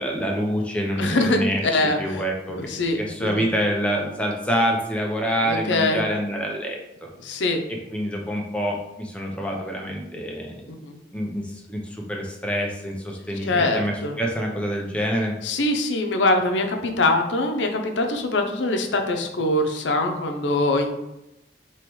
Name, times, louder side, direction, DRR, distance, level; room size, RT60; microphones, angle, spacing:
voice 1, 0.0-2.6 2.9-7.4 7.7-10.7 11.1-15.3, equal, 5° left, 0 dB, 0.6 m, -27 dB
voice 2, 1.0-2.2 2.6-3.5 5.4-6.0 7.2-7.6 10.7-11.0 13.5-14.2 15.4-20.9, left 2 dB, 80° left, 4 dB, 0.6 m, -23 dB
4.8 x 3.0 x 3.1 m, 0.91 s
head